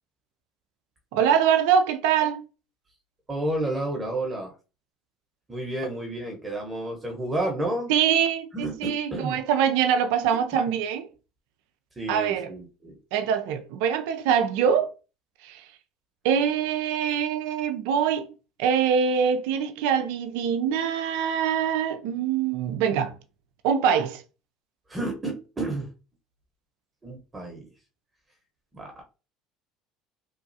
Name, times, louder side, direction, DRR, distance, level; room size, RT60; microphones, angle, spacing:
voice 1, 1.1-2.4 7.9-11.1 12.1-12.5 13.1-14.9 15.4-15.6 16.2-18.3 18.6-23.1 23.6-24.2, right 8 dB, 75° right, 0.4 m, -24 dB
voice 2, 3.3-4.5 5.5-7.9 8.5-9.4 12.0-13.0 24.9-25.9 27.0-27.6 28.7-29.0, right 1 dB, 20° right, 0.9 m, -31 dB
3.0 x 2.3 x 2.7 m
hypercardioid pair, 80°, 0 cm